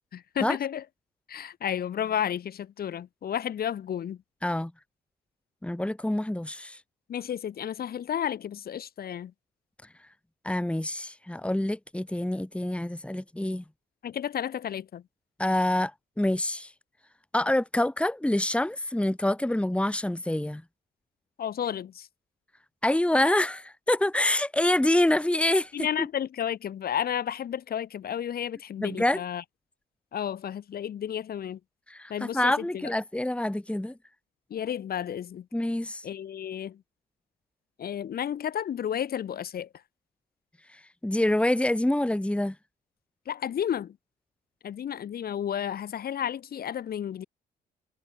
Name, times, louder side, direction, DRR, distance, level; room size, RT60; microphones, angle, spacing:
voice 1, 0.1-0.8 1.3-4.2 7.1-9.3 14.0-15.0 21.4-22.1 25.7-29.4 30.1-31.6 32.1-32.8 34.5-35.5 36.0-36.8 37.8-39.7 43.3-44.0 44.6-47.2, left 9 dB, 45° left, 3.6 m, -32 dB
voice 2, 5.6-6.8 10.4-13.6 15.4-15.9 16.2-16.7 17.3-20.6 22.8-25.9 28.8-29.2 31.9-34.0 35.5-36.0 40.7-42.5, left 1 dB, 5° left, 2.6 m, -26 dB
figure-of-eight pair, 50°, 21 cm